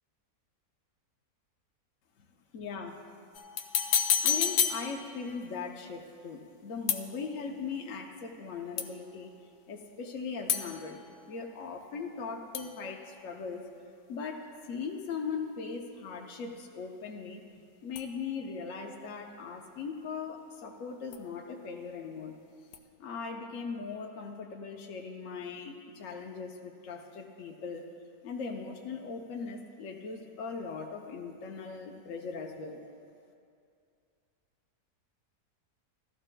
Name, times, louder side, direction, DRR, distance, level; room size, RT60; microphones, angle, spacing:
voice 1, 2.5-3.0 3.8-9.3 9.7-11.0 11.3-13.6 14.1-17.4 17.8-22.3 23.0-27.8 28.2-32.8, left 5 dB, 65° left, 1 dB, 1.0 m, -39 dB
sound 1, 3.3-5.5 6.9-7.6 8.8-9.3 10.5-12.3 12.5-13.7 18.0-18.7 21.1-21.8 22.7-22.8, left 8 dB, 85° left, 1.1 m, -33 dB
16.0 x 13.0 x 2.2 m, 2.4 s
omnidirectional pair, 1.6 m